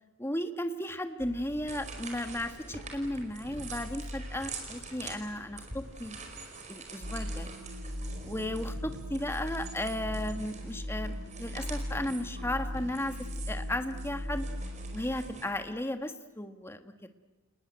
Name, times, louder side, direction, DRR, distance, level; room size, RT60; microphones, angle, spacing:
voice 1, 0.2-6.2 6.7-7.5 8.2-13.2 13.5-14.4 14.9-16.9, left 1 dB, 10° left, 8 dB, 1.5 m, -35 dB
sound 1, 1.2-6.5, left 1 dB, 85° left, 5.4 m, -47 dB
sound 2, 1.4-15.4, right 4 dB, 35° right, 4.9 m, -46 dB
sound 3, 7.0-15.1, equal, 70° right, 4.9 m, -38 dB
29.5 x 20.0 x 9.4 m, 1.2 s
head